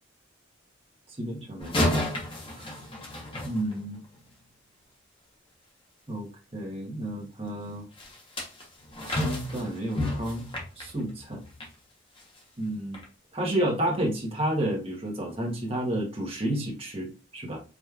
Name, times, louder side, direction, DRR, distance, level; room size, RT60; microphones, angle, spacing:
voice 1, 1.2-1.8 2.5-2.8 3.4-4.0 6.1-7.8 9.1-10.5 10.8-11.4 12.6-13.0 13.3-17.6, right 1 dB, 30° right, -1 dB, 1.1 m, -31 dB
sound 1, 1.6-4.2 8.0-11.8 12.2-12.4 12.9-13.1, left 1 dB, 25° left, 1.0 m, -31 dB
5.0 x 3.1 x 2.4 m, 0.34 s
head